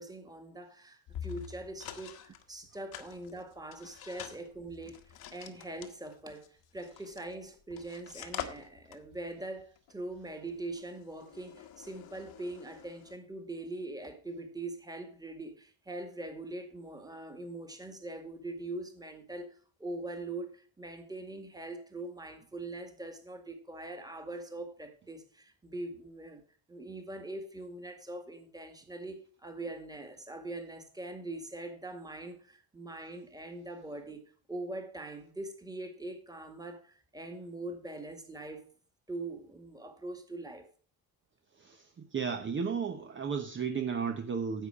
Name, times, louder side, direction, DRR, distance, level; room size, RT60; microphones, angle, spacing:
voice 1, 0.0-26.4 26.7-38.7 39.1-40.7, right 2 dB, 10° right, 2.0 m, -42 dB
sound 1, 1.1-2.4 2.9-7.4 7.7-13.2, left 10 dB, 85° left, 1.5 m, -46 dB
voice 2, 42.1-44.7, right 6 dB, 30° right, 1.0 m, -33 dB
10.0 x 8.6 x 5.0 m
cardioid pair, 140°, 37 cm